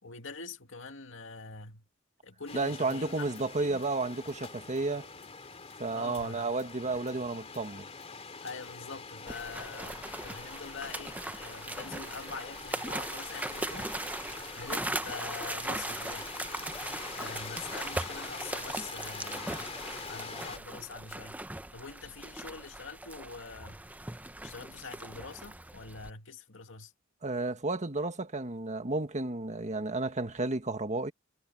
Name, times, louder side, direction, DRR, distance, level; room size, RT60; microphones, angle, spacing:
voice 1, 0.0-1.8 2.2-3.3 3.6-3.8 5.9-6.5 8.4-16.3 17.1-19.7 20.1-21.4 21.7-23.8 24.4-26.9, left 4 dB, 65° left, 2.4 m, -44 dB
sound 1, 2.5-20.6, left 4 dB, 30° left, 2.5 m, -45 dB
voice 2, 2.5-5.1 5.8-7.8 27.2-31.1, right 3 dB, 35° right, 1.8 m, -32 dB
sound 2, 9.3-26.1, right 2 dB, 10° right, 0.8 m, -39 dB
head